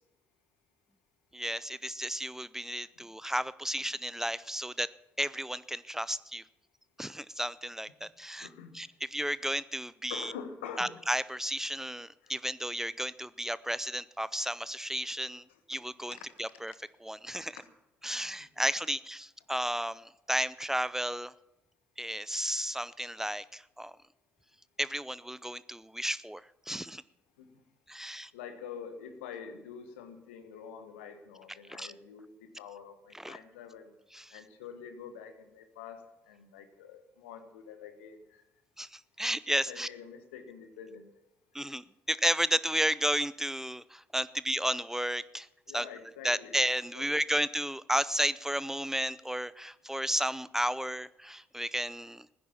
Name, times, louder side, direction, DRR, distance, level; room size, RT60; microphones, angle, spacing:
voice 1, 1.3-4.9 5.2-6.4 7.0-8.5 8.7-10.3 10.8-16.7 17.0-17.6 18.0-21.3 22.0-23.9 24.8-26.4 26.7-27.0 27.9-28.3 31.7-31.9 33.1-33.4 34.1-34.4 38.8-39.9 41.5-45.5 45.7-45.9 46.2-52.3, equal, 5° right, 18 dB, 0.5 m, -33 dB
voice 2, 8.4-8.8 10.1-11.0 12.2-12.4 15.5-15.6 16.1-16.2 17.6-17.7 27.4-27.5 28.3-33.9 34.3-38.4 39.7-41.1 41.6-41.7 45.7-46.6 46.9-47.1, left 7 dB, 80° left, 9 dB, 1.4 m, -46 dB
16.5 x 10.0 x 7.2 m, 0.95 s
figure-of-eight pair, 45°, 6 cm